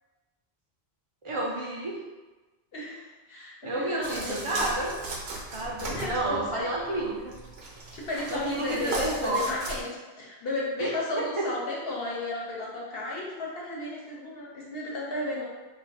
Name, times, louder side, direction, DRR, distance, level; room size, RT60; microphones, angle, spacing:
voice 1, 1.2-2.0 3.6-4.9 5.5-7.3 8.3-9.6 10.8-11.4, right 2 dB, 40° right, -3 dB, 0.4 m, -30 dB
voice 2, 2.7-4.7 5.6-6.8 7.9-9.9 10.2-15.4, left 2 dB, 65° left, -4 dB, 1.0 m, -34 dB
sound 1, 4.0-9.8, right 2 dB, 75° right, 0.9 m, -38 dB
sound 2, 5.5-6.7, left 1 dB, 45° left, 0.7 m, -45 dB
2.5 x 2.5 x 3.9 m, 1.2 s
omnidirectional pair, 1.1 m